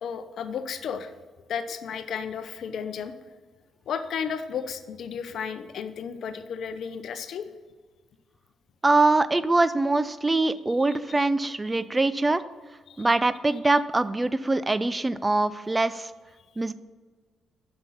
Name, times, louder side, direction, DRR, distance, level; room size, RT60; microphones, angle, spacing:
voice 1, 0.0-1.1 1.5-3.1 3.9-7.5 10.9-11.2 12.9-13.1, left 7 dB, 65° left, 10 dB, 0.7 m, -33 dB
voice 2, 8.8-12.4 13.0-16.1 16.6-16.7, right 2 dB, 20° right, 15 dB, 0.5 m, -23 dB
7.6 x 6.1 x 5.7 m, 1.4 s
supercardioid pair, 55°, 0 cm